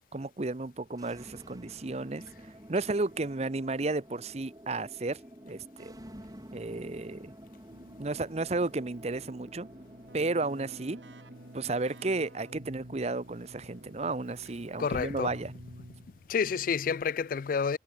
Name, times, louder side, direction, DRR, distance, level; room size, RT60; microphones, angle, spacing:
voice 1, 0.1-2.2 2.7-5.2 5.4-5.9 6.5-7.3 8.0-9.7 10.1-11.0 11.5-15.5, right 3 dB, 35° right, 0.8 m, -33 dB
sound 1, 0.9-17.0, equal, 20° right, 6.2 m, -51 dB
Keyboard (musical), 7.7-16.4, right 1 dB, 90° right, 4.2 m, -51 dB
voice 2, 14.8-15.3 16.3-17.8, left 6 dB, 50° left, 0.4 m, -29 dB
head